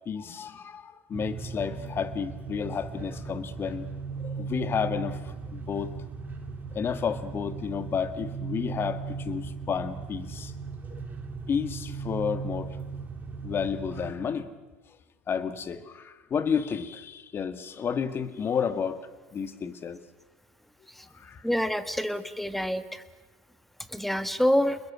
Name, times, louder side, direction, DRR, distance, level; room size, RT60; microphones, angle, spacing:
voice 1, 0.1-3.9 4.2-5.9 6.7-10.5 10.9-11.0 11.5-12.8 13.4-14.5 15.3-19.0 19.3-20.0 21.1-21.5, left 7 dB, 35° left, 11 dB, 1.9 m, -31 dB
sound 1, 1.1-14.1, right 5 dB, 25° right, 3.5 m, -37 dB
voice 2, 21.4-23.0 23.9-24.8, equal, ahead, 11 dB, 1.6 m, -26 dB
29.5 x 21.0 x 6.3 m, 1.2 s
hypercardioid pair, 85°, 7 cm